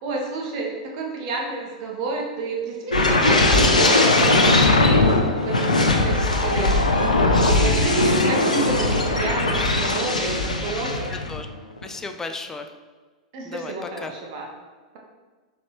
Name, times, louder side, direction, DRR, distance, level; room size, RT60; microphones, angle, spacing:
voice 1, 0.0-5.1 5.4-10.9 13.3-14.5, right 3 dB, 50° right, 0 dB, 0.8 m, -30 dB
sound 1, 2.9-11.4 11.8-12.0, left 2 dB, 90° left, 0.5 m, -19 dB
voice 2, 6.1-6.7 10.6-10.7 11.1-11.5 11.8-12.7 13.4-14.1, left 3 dB, 10° left, 5 dB, 0.3 m, -35 dB
4.1 x 3.1 x 3.0 m, 1.3 s
figure-of-eight pair, 100°, 4 cm